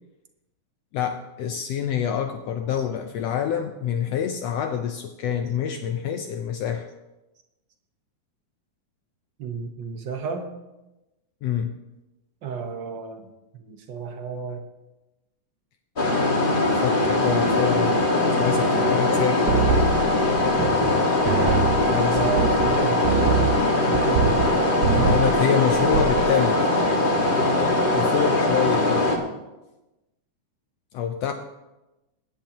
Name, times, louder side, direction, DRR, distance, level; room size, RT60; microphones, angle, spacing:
voice 1, 0.9-6.9 11.4-11.7 16.8-17.9 18.3-19.5 21.9-22.3 24.9-26.7 27.9-29.2 30.9-31.3, left 8 dB, 90° left, 6 dB, 1.4 m, -26 dB
voice 2, 9.4-10.5 12.4-13.2 13.5-14.6 22.1-23.0 23.9-25.1, right 6 dB, 55° right, 4 dB, 1.3 m, -32 dB
sound 1, 16.0-29.2, left 2 dB, 25° left, 1.1 m, -21 dB
sound 2, 19.5-21.0 21.3-24.5 24.8-25.4 25.7-26.3, right 5 dB, 75° right, 1.9 m, -24 dB
22.0 x 10.5 x 2.9 m, 1.0 s
omnidirectional pair, 3.7 m